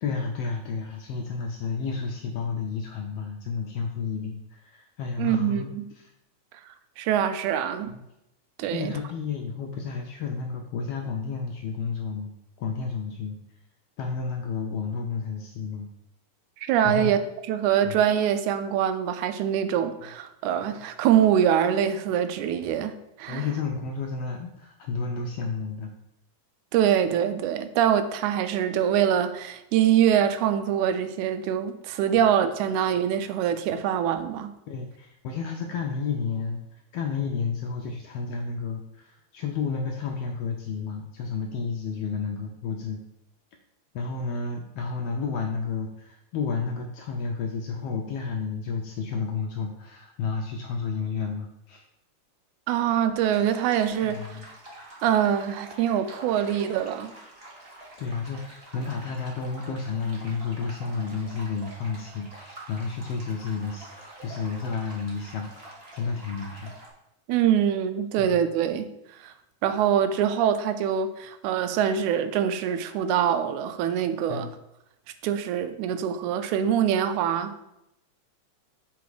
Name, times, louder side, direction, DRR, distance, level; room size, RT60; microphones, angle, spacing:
voice 1, 0.0-6.1 7.9-8.0 8.7-12.3 12.6-13.4 14.0-15.9 16.8-17.1 17.8-18.0 23.3-25.9 32.1-32.2 34.7-43.0 43.9-51.8 54.0-54.5 58.0-66.7 68.2-68.4 74.3-74.5, left 5 dB, 80° left, 1.4 m, -31 dB
voice 2, 5.2-5.9 7.0-7.9 8.6-8.9 16.6-17.2 17.5-23.4 26.7-34.5 52.7-54.2 55.0-57.1 67.3-68.9 69.2-69.3 69.6-74.5 75.2-77.7, right 9 dB, 90° right, 2.0 m, -24 dB
sound 1, 53.2-66.9, right 1 dB, 35° right, 0.9 m, -47 dB
7.0 x 4.2 x 4.8 m
omnidirectional pair, 3.4 m